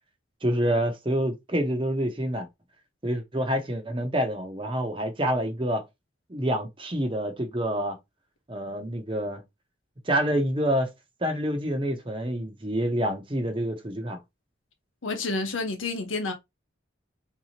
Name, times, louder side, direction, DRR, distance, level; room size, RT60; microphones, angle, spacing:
voice 1, 0.4-2.5 3.0-5.8 6.3-8.0 8.5-9.4 10.1-10.9 11.2-14.2, equal, 25° right, 0.8 m, -27 dB
voice 2, 15.0-16.3, left 3 dB, 80° left, 1.0 m, -29 dB
3.7 x 2.8 x 2.9 m
head